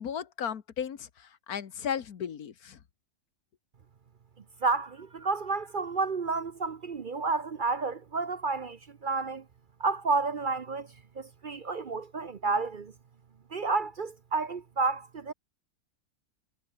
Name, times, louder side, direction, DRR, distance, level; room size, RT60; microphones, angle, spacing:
voice 1, 0.0-2.8, left 8 dB, 90° left, 1.8 m, -35 dB
voice 2, 4.6-9.4 9.8-10.9 11.2-12.9 13.5-15.3, right 4 dB, 45° right, 0.8 m, -30 dB
omnidirectional pair, 1.5 m